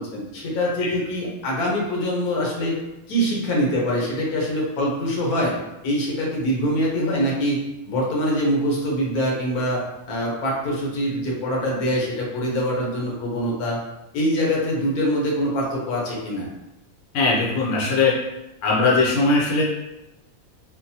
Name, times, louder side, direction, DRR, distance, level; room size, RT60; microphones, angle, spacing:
voice 1, 0.0-2.8 3.1-5.5 5.8-7.6 7.9-13.8 14.1-16.5, equal, 80° left, -3 dB, 1.3 m, -24 dB
voice 2, 17.1-18.2 18.6-19.6, left 3 dB, 65° left, -4 dB, 1.0 m, -19 dB
3.8 x 2.1 x 2.7 m, 0.94 s
omnidirectional pair, 1.5 m